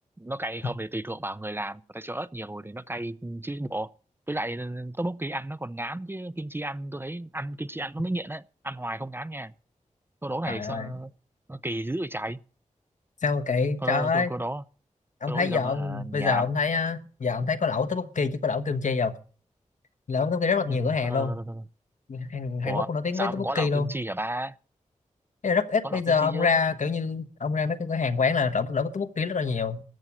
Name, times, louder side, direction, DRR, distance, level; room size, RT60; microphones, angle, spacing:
voice 1, 0.2-3.9 4.3-9.5 10.2-11.1 11.5-12.4 13.8-14.6 15.3-16.5 20.7-21.6 22.7-22.9 23.1-24.6 25.8-26.6, right 1 dB, 15° right, 0.5 m, -33 dB
voice 2, 10.5-10.9 13.2-14.3 15.2-19.1 20.1-21.4 22.1-23.9 25.4-29.8, left 5 dB, 70° left, 1.2 m, -26 dB
14.0 x 8.4 x 6.1 m
cardioid pair, 50°, 13 cm